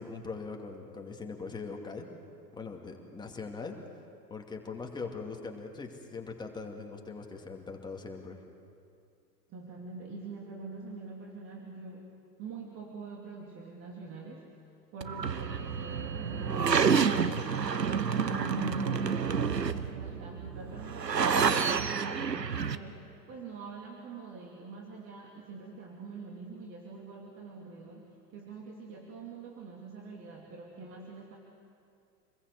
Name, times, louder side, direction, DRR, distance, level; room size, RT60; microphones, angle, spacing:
voice 1, 0.0-2.1 2.5-3.7 4.3-8.4, left 4 dB, 10° left, 2 dB, 2.5 m, -41 dB
voice 2, 9.5-17.6 18.1-31.4, right 3 dB, 25° right, -1 dB, 2.9 m, -45 dB
sound 1, 15.0-22.8, right 6 dB, 80° right, 1.1 m, -29 dB
27.5 x 21.5 x 8.2 m, 2.4 s
figure-of-eight pair, 105°, 49 cm